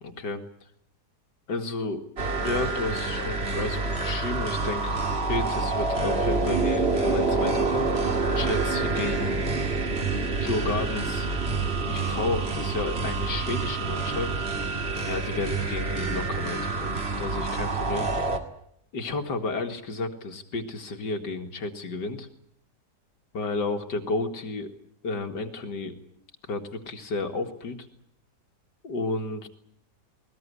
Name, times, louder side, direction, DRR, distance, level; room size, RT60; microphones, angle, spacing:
voice 1, 0.0-0.4 1.5-2.0 2.4-5.0 5.3-7.9 8.3-9.5 10.2-11.3 11.9-14.3 15.0-18.1 18.9-22.3 23.3-24.7 25.0-26.0 26.5-27.8 28.8-29.5, left 3 dB, 85° left, 4 dB, 2.7 m, -32 dB
sound 1, 2.2-18.4, right 3 dB, 35° right, 2.2 m, -27 dB
20.5 x 19.5 x 9.8 m, 0.72 s
omnidirectional pair, 1.8 m